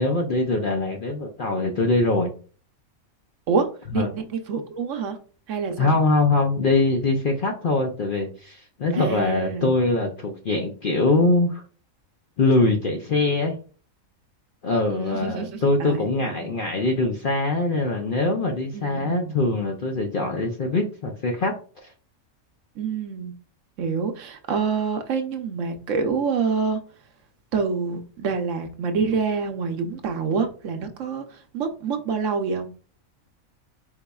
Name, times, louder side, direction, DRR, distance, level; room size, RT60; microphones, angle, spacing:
voice 1, 0.0-2.3 3.9-4.1 5.8-11.6 12.4-13.5 14.6-21.5 21.8-21.9, left 2 dB, 55° left, 0.6 m, -23 dB
voice 2, 3.9-5.2 5.5-5.9 8.9-9.7 14.9-16.5 18.7-19.4 22.8-23.3 23.8-26.8 27.5-32.7, right 5 dB, 65° right, 1.0 m, -27 dB
4.7 x 4.0 x 2.3 m
omnidirectional pair, 1.5 m